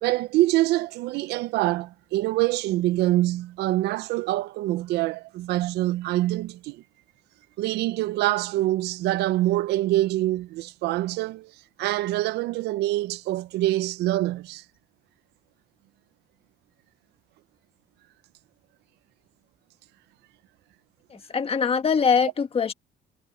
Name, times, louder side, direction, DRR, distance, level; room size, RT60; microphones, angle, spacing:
voice 1, 0.0-6.8 7.6-11.5 11.8-14.6, right 16 dB, 80° right, 0.7 m, -25 dB
voice 2, 21.1-22.7, left 6 dB, 35° left, 1.7 m, -23 dB
cardioid pair, 110°, 17 cm